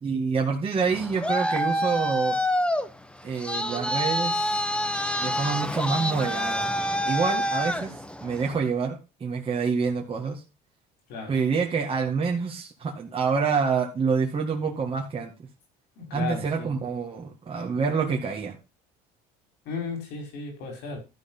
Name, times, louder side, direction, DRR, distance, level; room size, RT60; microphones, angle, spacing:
voice 1, 0.0-2.4 3.2-4.6 5.2-6.7 7.1-7.9 8.2-10.4 11.3-15.3 16.1-18.6, right 5 dB, 30° right, 2.1 m, -27 dB
Traffic noise roadway noise, 0.8-8.6, equal, 5° left, 1.2 m, -27 dB
voice 2, 16.0-16.8 19.7-21.0, left 4 dB, 70° left, 5.1 m, -34 dB
13.0 x 4.9 x 5.6 m
supercardioid pair, 90°, 18 cm